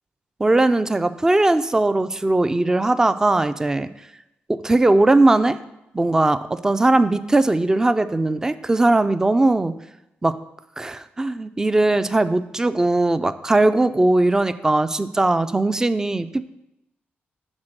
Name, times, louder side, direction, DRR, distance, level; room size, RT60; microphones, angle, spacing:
voice 1, 0.4-3.9 4.5-5.6 5.9-9.8 10.2-10.4 10.8-16.5, right 2 dB, 15° right, 13 dB, 0.3 m, -19 dB
7.3 x 4.4 x 6.4 m, 0.88 s
cardioid pair, 105°, 4 cm